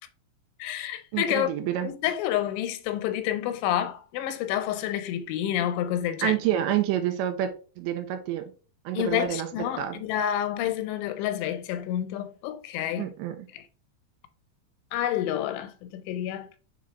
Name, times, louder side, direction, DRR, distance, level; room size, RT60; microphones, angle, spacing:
voice 1, 0.6-1.6 1.8-6.4 8.9-13.1 13.5-13.6 14.9-16.6, left 11 dB, 90° left, 3.1 m, -29 dB
voice 2, 1.1-1.9 6.2-7.5 7.8-8.5 8.9-9.5 9.8-10.0 13.0-13.5, right 11 dB, 90° right, 2.9 m, -28 dB
7.2 x 3.7 x 3.5 m
omnidirectional pair, 5.2 m